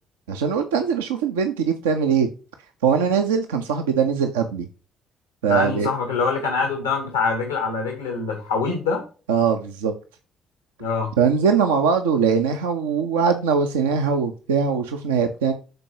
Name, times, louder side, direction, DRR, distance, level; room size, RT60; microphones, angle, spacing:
voice 1, 0.3-2.3 2.8-4.7 5.4-5.9 9.3-9.9 11.2-15.5, right 6 dB, 75° right, 5 dB, 0.6 m, -21 dB
voice 2, 5.5-9.0 10.8-11.1, left 4 dB, 80° left, 4 dB, 1.3 m, -24 dB
13.0 x 4.5 x 2.8 m, 0.35 s
figure-of-eight pair, 45°, 0 cm